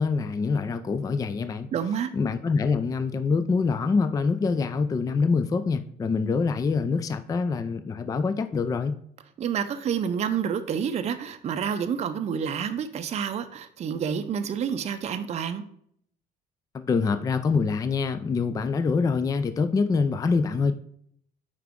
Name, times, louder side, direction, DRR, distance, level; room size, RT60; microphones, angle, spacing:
voice 1, 0.0-1.7 2.1-9.0 16.7-20.7, left 4 dB, 20° left, 11 dB, 0.3 m, -25 dB
voice 2, 1.7-2.1 9.4-15.6, right 7 dB, 40° right, 8 dB, 0.5 m, -28 dB
5.8 x 4.8 x 3.6 m, 0.67 s
cardioid pair, 110°, 17 cm